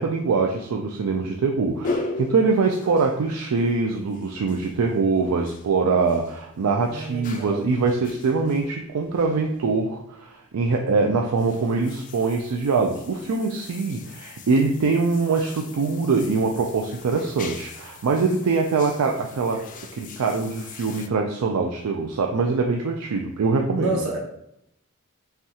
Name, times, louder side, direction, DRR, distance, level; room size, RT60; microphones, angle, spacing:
voice 1, 0.0-19.7 19.9-24.0, right 4 dB, 85° right, 2 dB, 0.4 m, -23 dB
sound 1, 1.8-9.8 10.5-10.9 11.3-21.1, left 3 dB, 35° left, 0.4 m, -39 dB
voice 2, 6.9-7.6 23.8-24.2, right 1 dB, 65° right, -1 dB, 1.1 m, -29 dB
5.6 x 2.3 x 2.8 m, 0.77 s
head